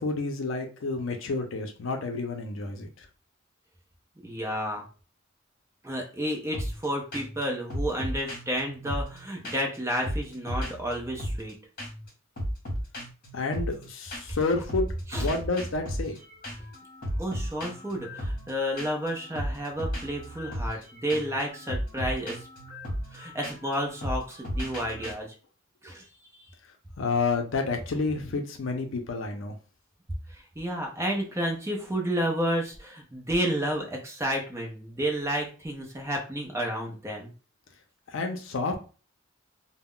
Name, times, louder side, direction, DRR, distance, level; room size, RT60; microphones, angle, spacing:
voice 1, 0.0-3.1 13.3-14.9 15.2-16.1 27.0-29.5 38.1-38.8, left 3 dB, 70° left, 4 dB, 0.5 m, -29 dB
voice 2, 4.2-4.8 5.8-11.6 14.3-14.4 15.1-15.3 17.2-22.4 23.1-25.3 25.8-26.1 26.3-26.5 30.3-37.3, equal, 15° right, 1 dB, 0.5 m, -31 dB
sound 1, 6.5-6.9 7.1-7.4 7.7-9.8 10.0-11.5 11.8-12.1 12.4-14.4 14.7-25.1, equal, 45° left, 1.0 m, -35 dB
2.3 x 2.1 x 3.6 m, 0.35 s
head